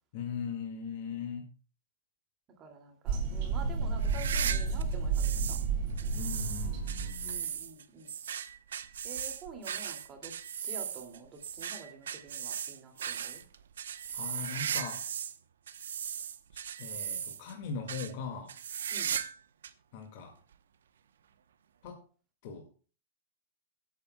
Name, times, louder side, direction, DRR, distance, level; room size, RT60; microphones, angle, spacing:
voice 1, 0.1-1.5 6.1-7.4 14.1-15.1 16.8-18.6 19.9-20.4 21.8-22.0 22.4-22.7, left 6 dB, 50° left, 3 dB, 1.9 m, -40 dB
voice 2, 2.6-5.6 7.2-8.1 9.0-10.3 10.6-13.4 18.9-19.2, right 4 dB, 25° right, 4 dB, 2.3 m, -48 dB
sound 1, 3.1-7.4, right 5 dB, 45° right, 3.7 m, -31 dB
sound 2, 4.0-5.7 6.0-15.4 15.7-17.5 17.9-18.1 18.5-19.4 19.6-19.7 20.5-20.6 21.9-22.0, right 8 dB, 90° right, 0.8 m, -37 dB
23.5 x 8.4 x 2.2 m, 0.34 s
hypercardioid pair, 145°, 0 cm